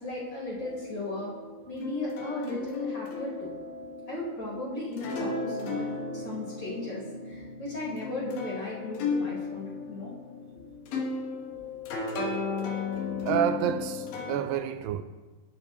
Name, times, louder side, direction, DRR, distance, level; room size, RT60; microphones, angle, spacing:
voice 1, 0.0-1.3 1.7-3.5 4.1-10.1, left 2 dB, 30° left, 4.6 m, -36 dB
sound 1, 0.6-14.4, left 4 dB, 75° left, 2.9 m, -35 dB
voice 2, 13.2-15.0, right 10 dB, 85° right, 2.2 m, -29 dB
18.5 x 7.9 x 3.0 m
omnidirectional pair, 4.0 m